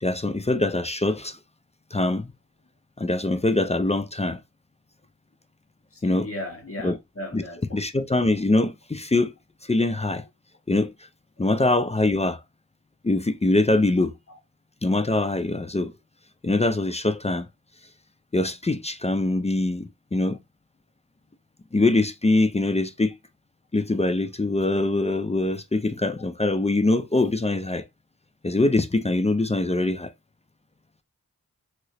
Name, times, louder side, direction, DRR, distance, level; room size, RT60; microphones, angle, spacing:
voice 1, 0.0-1.4 1.9-2.3 3.0-4.4 6.0-6.3 6.8-7.0 7.3-7.4 7.7-9.3 9.6-10.2 10.7-10.9 11.4-12.4 13.0-14.1 14.8-15.9 16.4-17.5 18.3-20.4 21.7-23.1 23.7-27.8 28.4-30.1, left 2 dB, 20° left, 0.4 m, -23 dB
voice 2, 5.9-7.6 14.3-14.4, left 1 dB, 40° left, 1.4 m, -36 dB
2.9 x 2.8 x 2.9 m
wide cardioid pair, 45°, 34 cm